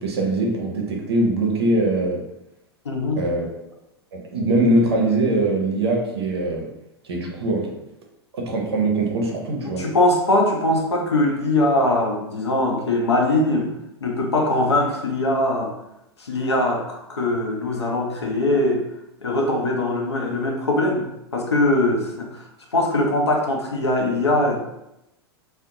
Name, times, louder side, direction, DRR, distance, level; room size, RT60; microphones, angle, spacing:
voice 1, 0.0-2.2 3.2-3.5 4.1-6.7 7.0-7.7 8.3-9.9, right 2 dB, 70° right, 0 dB, 0.6 m, -22 dB
voice 2, 2.8-3.3 9.7-13.7 14.0-15.7 16.2-18.8 19.2-21.1 21.3-24.6, left 1 dB, 85° left, 1 dB, 0.6 m, -21 dB
2.6 x 2.0 x 2.6 m, 0.87 s
figure-of-eight pair, 95°, 14 cm